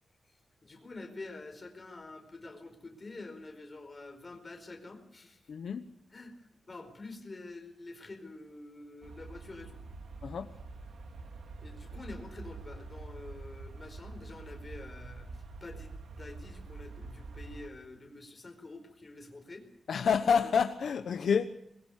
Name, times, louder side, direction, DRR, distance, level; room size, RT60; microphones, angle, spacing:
voice 1, 0.6-5.4 6.1-6.3 6.7-9.8 11.6-15.3 15.6-19.7, left 2 dB, 25° left, 4 dB, 4.7 m, -47 dB
voice 2, 5.5-5.8 10.2-10.5 19.9-21.5, left 6 dB, 70° left, 8 dB, 1.1 m, -28 dB
sound 1, 9.0-17.7, right 3 dB, 85° right, 2.8 m, -46 dB
24.0 x 22.0 x 6.6 m, 0.71 s
wide cardioid pair, 170°, 0 cm